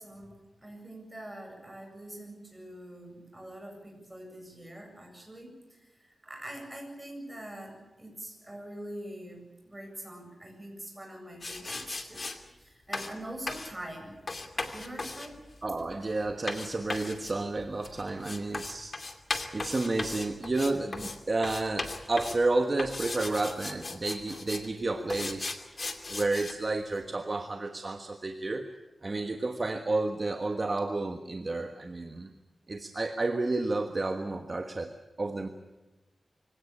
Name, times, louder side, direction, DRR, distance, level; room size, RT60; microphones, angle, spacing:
voice 1, 0.0-12.2 12.6-14.2 14.5-15.4, right 1 dB, 15° right, 2 dB, 8.0 m, -44 dB
sound 1, 11.4-12.4 12.9-13.1 13.5-13.7 14.3-21.2 21.4-22.4 22.8-24.7 25.1-26.5, left 3 dB, 40° left, 2.5 m, -37 dB
voice 2, 15.6-19.0 19.5-25.6 26.1-28.7 29.0-32.3 32.7-34.9 35.2-35.5, right 2 dB, 35° right, 6 dB, 1.4 m, -31 dB
24.5 x 17.5 x 8.8 m, 1.1 s
wide cardioid pair, 105°, 0 cm